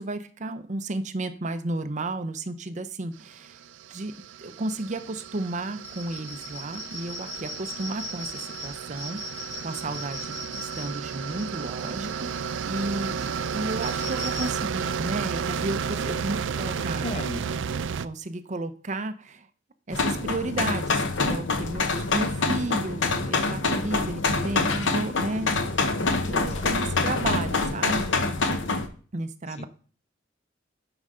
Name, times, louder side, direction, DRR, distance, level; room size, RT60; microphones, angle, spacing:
voice 1, 0.0-3.6 3.9-4.1 4.4-17.2 18.0-19.5 19.9-25.5 26.3-28.2 29.1-29.7, right 2 dB, 40° right, 10 dB, 0.6 m, -33 dB
sound 1, 3.4-18.1, right 6 dB, 80° right, 0.4 m, -33 dB
sound 2, 5.8-14.5, left 1 dB, 60° left, 3.6 m, -40 dB
voice 2, 9.7-10.0 16.5-17.5 26.4-26.7 29.6-29.7, left 1 dB, 35° left, 11 dB, 0.7 m, -37 dB
sound 3, 19.9-28.9, left 3 dB, 80° left, 1.0 m, -26 dB
11.0 x 5.4 x 3.7 m, 0.42 s
head